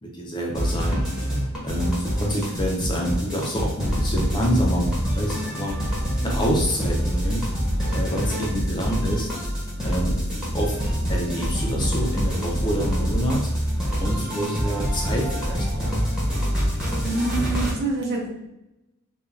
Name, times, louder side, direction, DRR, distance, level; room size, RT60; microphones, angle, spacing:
voice 1, 0.0-1.1 1.6-5.8 6.2-7.4 7.9-9.3 9.8-10.8 11.1-13.5 14.0-15.9, equal, 20° left, -1 dB, 0.4 m, -27 dB
sound 1, 0.5-17.7, equal, 5° right, 0.8 m, -25 dB
voice 2, 17.0-18.3, right 2 dB, 45° right, -2 dB, 0.7 m, -26 dB
2.4 x 2.2 x 3.1 m, 0.93 s
head